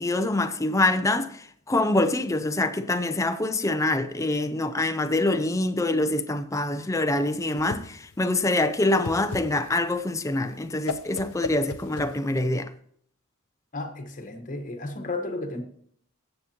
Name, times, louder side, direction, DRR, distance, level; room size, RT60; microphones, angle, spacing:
voice 1, 0.0-12.7, left 2 dB, 15° left, 0.6 m, -25 dB
Whoosh swoosh swish, 7.1-12.6, left 4 dB, 80° left, 0.7 m, -37 dB
voice 2, 13.7-15.6, left 2 dB, 40° left, 1.3 m, -33 dB
18.0 x 7.8 x 2.9 m
head